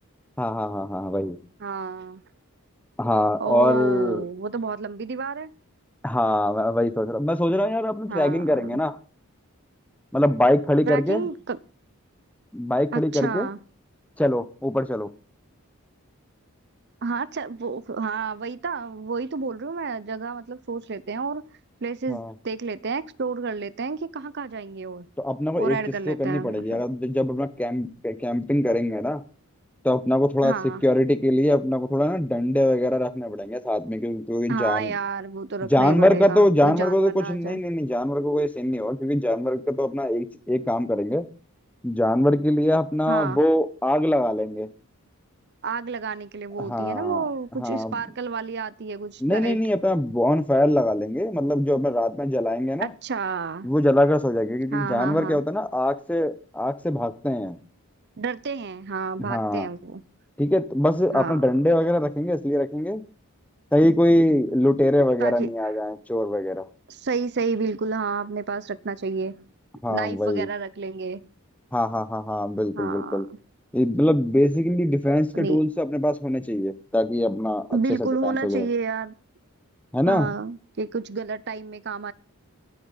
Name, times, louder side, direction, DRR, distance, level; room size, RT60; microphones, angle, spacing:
voice 1, 0.4-1.4 3.0-4.2 6.0-9.0 10.1-11.3 12.5-13.5 14.2-15.1 22.1-22.3 25.2-25.8 26.1-29.2 29.8-30.5 30.8-34.9 35.7-41.3 41.8-44.7 46.6-47.2 47.6-48.0 49.2-52.9 53.6-57.6 59.2-59.7 60.4-63.0 63.7-66.7 69.8-70.5 71.7-73.3 73.7-77.7 78.0-78.7 79.9-80.3, left 1 dB, 5° left, 0.8 m, -23 dB
voice 2, 1.6-2.2 3.4-5.5 8.1-8.8 10.9-11.6 12.9-13.6 17.0-21.5 21.8-25.1 25.6-26.8 30.4-30.8 34.5-37.6 43.1-43.4 45.6-49.6 52.8-53.7 54.7-55.4 58.2-60.0 61.1-61.4 65.2-65.5 66.9-69.4 69.9-71.3 72.8-73.2 75.3-75.6 77.7-79.1 80.1-82.1, right 4 dB, 50° right, 0.6 m, -30 dB
19.5 x 8.5 x 4.0 m
head